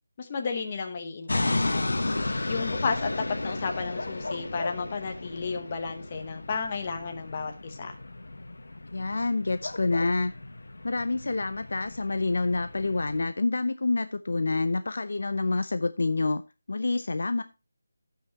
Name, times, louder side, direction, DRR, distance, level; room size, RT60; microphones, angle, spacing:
voice 1, 0.2-1.9 2.5-7.9, left 5 dB, 20° left, 4 dB, 1.0 m, -33 dB
sound 1, 1.3-13.2, left 2 dB, 65° left, 1.3 m, -34 dB
voice 2, 8.9-10.3 10.8-16.4 16.7-17.4, left 3 dB, 50° left, 10 dB, 0.6 m, -27 dB
16.5 x 5.7 x 2.8 m, 0.27 s
figure-of-eight pair, 180°, 0 cm